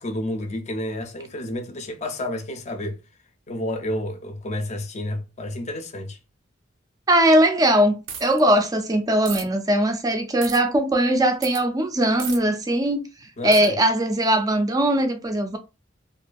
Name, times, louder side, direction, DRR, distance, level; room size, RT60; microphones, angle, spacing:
voice 1, 0.0-3.0 3.5-6.2 13.4-13.7, left 1 dB, 35° left, 0.5 m, -30 dB
voice 2, 7.1-8.0 8.2-13.0 13.4-15.6, right 1 dB, 20° right, 0.4 m, -20 dB
sound 1, 8.1-8.4 9.3-9.4 10.4-10.6 11.4-11.6 12.2-12.4 13.5-13.7, right 7 dB, 75° right, 0.5 m, -33 dB
2.6 x 2.4 x 2.2 m
head